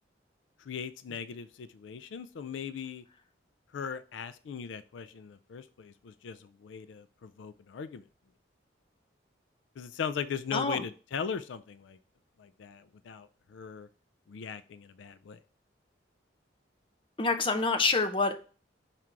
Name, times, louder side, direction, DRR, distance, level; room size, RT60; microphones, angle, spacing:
voice 1, 0.7-3.0 3.7-8.0 9.8-12.0 12.4-13.9 14.3-15.4, left 7 dB, 80° left, 14 dB, 0.4 m, -39 dB
voice 2, 10.5-10.8 17.2-18.3, left 3 dB, 25° left, 7 dB, 0.7 m, -27 dB
5.9 x 3.7 x 4.5 m, 0.37 s
head